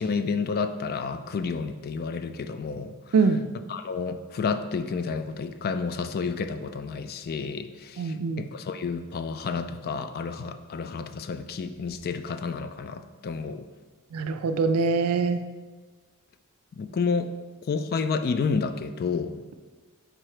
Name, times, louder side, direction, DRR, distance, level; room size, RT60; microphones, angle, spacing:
voice 1, 0.0-3.2 3.7-13.7 16.7-17.3 17.7-19.4, left 5 dB, 45° left, 10 dB, 0.3 m, -30 dB
voice 2, 3.1-3.5 8.0-8.4 14.1-15.4, right 4 dB, 75° right, 10 dB, 0.4 m, -23 dB
5.1 x 4.4 x 4.8 m, 1.4 s
head